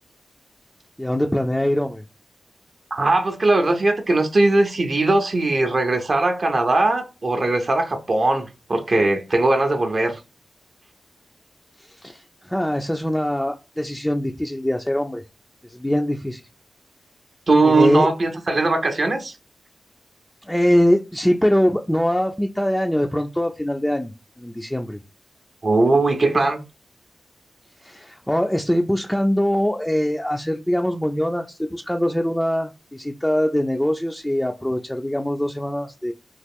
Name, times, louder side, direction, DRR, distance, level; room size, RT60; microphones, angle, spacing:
voice 1, 1.0-2.0 12.0-15.2 15.7-16.4 17.6-18.1 20.5-24.1 24.4-25.0 27.8-36.1, equal, 5° left, 0.3 m, -22 dB
voice 2, 2.9-10.2 17.5-19.4 25.6-26.6, right 2 dB, 50° right, 0.5 m, -19 dB
3.0 x 2.4 x 3.5 m
wide cardioid pair, 85°, 0 cm